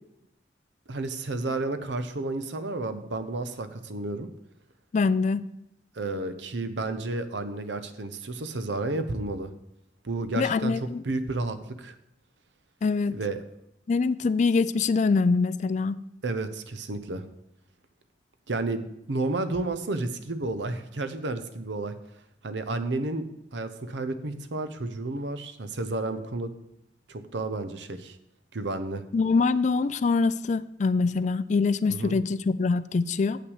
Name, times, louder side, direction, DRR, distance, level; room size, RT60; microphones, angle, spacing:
voice 1, 0.9-4.3 5.9-9.5 10.0-11.9 13.1-13.4 16.2-17.2 18.5-22.0 22.4-26.5 27.1-28.2 28.5-29.0 31.9-32.2, right 2 dB, 90° right, 10 dB, 0.8 m, -31 dB
voice 2, 4.9-5.4 10.4-11.0 12.8-13.2 13.9-16.0 29.1-33.4, left 4 dB, 40° left, 16 dB, 0.3 m, -24 dB
8.0 x 6.0 x 6.4 m, 0.81 s
head